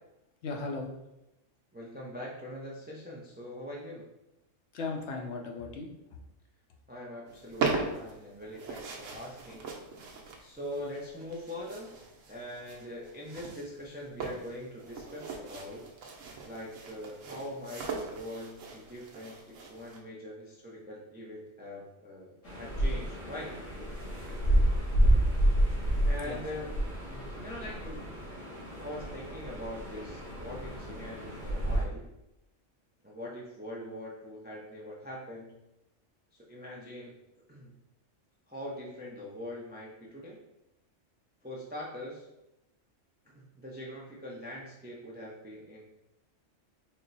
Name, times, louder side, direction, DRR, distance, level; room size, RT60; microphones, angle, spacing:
voice 1, 0.4-0.9 4.7-6.2 26.2-26.4, left 3 dB, 70° left, 2 dB, 0.9 m, -37 dB
voice 2, 1.7-4.0 6.9-9.7 10.4-11.9 12.3-15.9 16.4-23.6 26.0-28.0 28.8-32.1 33.0-35.5 36.3-37.2 37.5-37.7 38.5-40.4 41.4-42.3 43.3-45.8, left 1 dB, 15° right, -3 dB, 0.3 m, -42 dB
sound 1, 7.3-20.0, right 4 dB, 85° right, 1.1 m, -39 dB
sound 2, 22.4-31.8, right 1 dB, 90° left, 2.0 m, -29 dB
4.3 x 2.1 x 3.9 m, 0.90 s
omnidirectional pair, 1.3 m